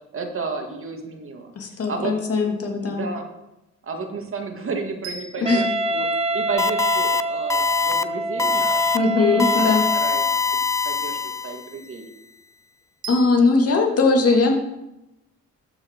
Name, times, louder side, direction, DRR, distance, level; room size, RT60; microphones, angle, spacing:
voice 1, 0.1-1.5 1.9-2.1 2.4-3.3 3.8-6.1 6.3-10.2 10.8-12.1, right 4 dB, 45° right, 4 dB, 1.9 m, -32 dB
voice 2, 1.6-3.1 5.4-5.7 8.9-9.8 13.1-14.5, left 3 dB, 50° left, 2 dB, 2.4 m, -20 dB
sound 1, 5.0-7.2 13.0-13.8, right 2 dB, 70° right, 1.8 m, -40 dB
Wind instrument woodwind instrument, 5.5-10.5, right 2 dB, 20° right, 1.1 m, -26 dB
sound 2, 6.6-7.2 7.5-8.0 8.4-9.0 9.4-11.7, left 5 dB, 10° left, 0.3 m, -23 dB
12.5 x 6.7 x 4.5 m, 0.93 s
cardioid pair, 90°, 30 cm